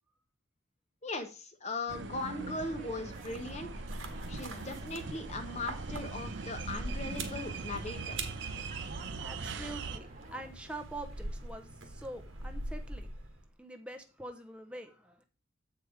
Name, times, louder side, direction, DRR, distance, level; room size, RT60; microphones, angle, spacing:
voice 1, 1.0-3.8 4.3-8.2, left 2 dB, 35° left, 6 dB, 0.7 m, -39 dB
sound 1, 1.9-10.0, right 4 dB, 60° right, 0.7 m, -41 dB
sound 2, 2.1-10.5, right 2 dB, 40° right, 0.9 m, -52 dB
sound 3, 3.1-13.5, right 2 dB, 80° right, 1.4 m, -43 dB
voice 2, 8.7-13.1 13.6-15.3, right 1 dB, 5° right, 5 dB, 0.6 m, -45 dB
7.8 x 4.6 x 4.9 m, 0.34 s
head